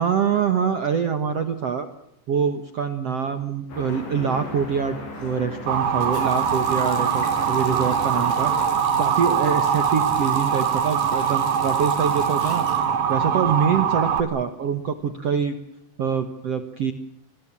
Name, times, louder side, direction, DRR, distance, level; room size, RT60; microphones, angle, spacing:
voice 1, 0.0-1.9 2.3-8.7 9.0-12.7 13.1-15.6 16.0-16.9, right 7 dB, 75° right, 9 dB, 1.4 m, -25 dB
sound 1, 3.7-8.7, left 3 dB, 85° left, 8.5 m, -36 dB
Motor vehicle (road) / Siren, 5.7-14.2, right 8 dB, 90° right, 1.2 m, -22 dB
Water tap faucet, 6.0-13.7 14.1-15.1, left 4 dB, 55° left, 6.9 m, -42 dB
28.0 x 20.5 x 7.5 m, 0.83 s
omnidirectional pair, 5.1 m